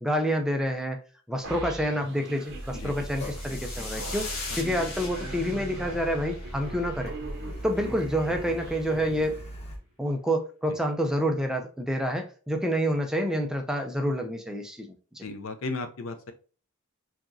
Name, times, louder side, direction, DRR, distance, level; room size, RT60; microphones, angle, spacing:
voice 1, 0.0-1.0 1.3-4.3 4.6-7.1 7.6-9.4 10.0-14.9 15.1-15.3, equal, 5° right, 3 dB, 0.5 m, -28 dB
sound 1, 1.4-9.7, right 3 dB, 50° right, 1.0 m, -42 dB
Car, 2.5-9.8, equal, 30° left, 1.0 m, -39 dB
sound 2, 2.6-7.1, left 3 dB, 90° left, 1.7 m, -40 dB
voice 2, 15.2-16.3, left 3 dB, 65° left, 8 dB, 0.6 m, -35 dB
4.7 x 2.9 x 2.6 m, 0.38 s
head